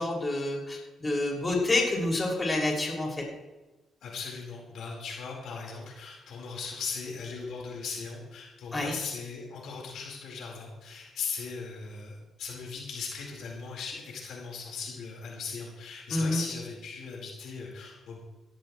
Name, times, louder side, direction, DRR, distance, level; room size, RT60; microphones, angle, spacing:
voice 1, 0.0-3.2 8.7-8.9 16.1-16.4, left 2 dB, 25° left, -2 dB, 6.4 m, -28 dB
voice 2, 4.0-18.2, left 5 dB, 75° left, -2 dB, 4.7 m, -38 dB
17.5 x 16.5 x 3.3 m, 1.1 s
cardioid pair, 90°, 0 cm